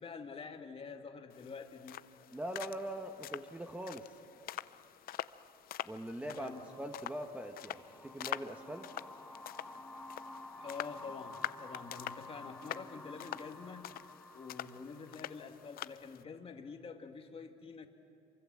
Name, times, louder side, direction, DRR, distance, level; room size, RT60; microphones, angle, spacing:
voice 1, 0.0-2.0 6.2-6.6 10.6-14.1 14.3-17.9, left 5 dB, 35° left, 5 dB, 2.0 m, -47 dB
sound 1, 1.3-16.2, left 13 dB, 60° left, 0.6 m, -46 dB
voice 2, 2.3-4.2 5.8-8.9, right 1 dB, 10° right, 4 dB, 1.2 m, -42 dB
sound 2, 6.3-15.8, left 2 dB, 5° left, 1.3 m, -52 dB
Chirp tweet, 7.7-13.7, right 1 dB, 80° right, 7.2 m, -59 dB
27.0 x 24.0 x 7.6 m, 2.7 s
cardioid pair, 110°, 17 cm